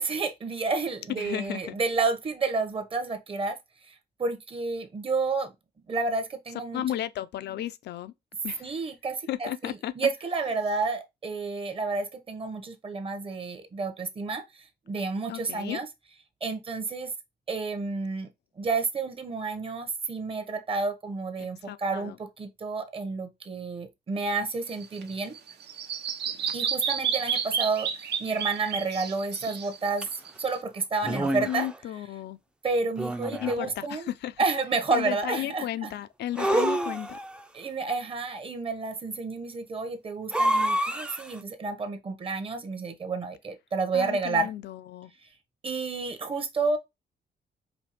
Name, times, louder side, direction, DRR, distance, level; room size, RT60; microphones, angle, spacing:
voice 1, 0.0-3.6 3.8-5.5 5.9-6.8 8.6-15.9 16.4-17.1 17.5-18.3 18.6-25.3 26.5-30.1 30.4-31.7 32.6-34.1 34.4-35.9 37.5-44.5 45.6-46.8, right 3 dB, 30° right, 0.8 m, -30 dB
voice 2, 1.2-1.8 6.7-8.1 8.4-8.7 9.3-9.9 15.3-15.8 21.7-22.2 31.0-32.4 33.4-34.4 34.9-37.2 43.9-45.1, left 12 dB, 75° left, 0.5 m, -34 dB
Bird vocalization bird call bird song, 24.7-30.6, right 7 dB, 75° right, 0.8 m, -31 dB
sound 1, 30.0-30.1 31.0-31.8 33.0-33.7 36.4-37.4 40.3-41.4, right 1 dB, 5° right, 0.4 m, -27 dB
5.2 x 2.8 x 2.9 m
cardioid pair, 135°, 18 cm